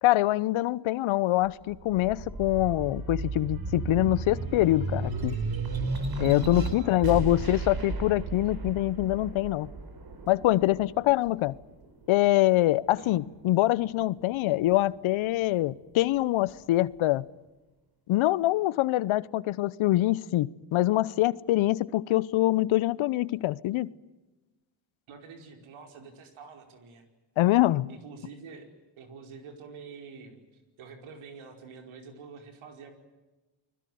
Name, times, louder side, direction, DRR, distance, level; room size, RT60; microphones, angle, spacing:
voice 1, 0.0-5.4 6.2-9.7 10.3-11.5 12.1-17.2 18.1-23.9 27.4-27.9, left 16 dB, 75° left, 1.0 m, -24 dB
sound 1, 1.4-12.2 12.8-13.9, right 3 dB, 45° right, 4.7 m, -34 dB
voice 2, 6.7-7.7 13.0-13.1 25.1-27.1 27.9-28.7 29.0-30.4 30.8-32.9, right 5 dB, 75° right, 5.2 m, -47 dB
30.0 x 21.0 x 9.4 m
supercardioid pair, 55°, 49 cm